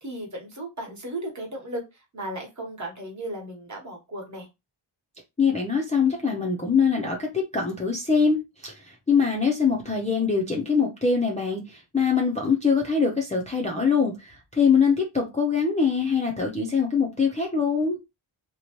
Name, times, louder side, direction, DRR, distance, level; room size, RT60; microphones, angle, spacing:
voice 1, 0.0-1.8 2.1-4.5, right 1 dB, 35° right, 1.1 m, -35 dB
voice 2, 5.4-18.0, left 5 dB, 15° left, 0.4 m, -23 dB
2.8 x 2.1 x 2.9 m
wide cardioid pair, 150°, 50 cm